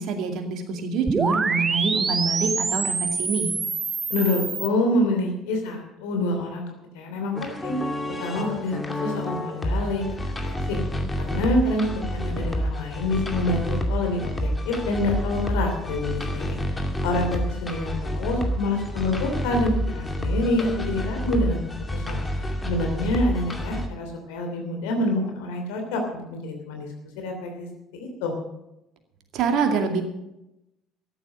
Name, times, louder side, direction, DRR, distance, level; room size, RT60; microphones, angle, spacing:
voice 1, 0.0-3.5 29.3-30.0, right 5 dB, 55° right, 5 dB, 2.3 m, -26 dB
sound 1, 1.1-4.7, right 4 dB, 25° right, 0.8 m, -26 dB
voice 2, 4.1-6.7 6.9-7.8 8.2-10.0 10.4-10.8 11.2-16.6 17.0-21.6 21.9-22.2 22.6-26.9 27.2-27.7 27.9-28.3, left 1 dB, 65° left, 3 dB, 3.0 m, -27 dB
sound 2, 7.4-23.9, equal, 15° left, 2.4 m, -29 dB
14.0 x 11.0 x 6.3 m, 0.87 s
figure-of-eight pair, 55°, 0 cm